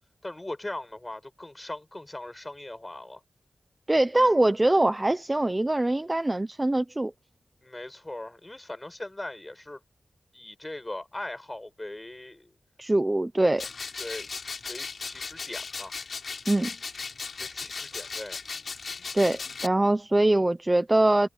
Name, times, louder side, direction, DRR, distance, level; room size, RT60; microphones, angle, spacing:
voice 1, 0.2-3.2 7.6-9.8 10.3-12.5 14.0-14.3 14.7-15.9 17.4-18.4, left 1 dB, 15° left, 6.5 m, -39 dB
voice 2, 3.9-7.1 12.8-13.7 16.5-16.7 19.1-21.3, right 1 dB, 15° right, 0.8 m, -23 dB
sound 1, 13.6-19.7, left 4 dB, 55° left, 4.9 m, -37 dB
wide cardioid pair, 175°, 0 cm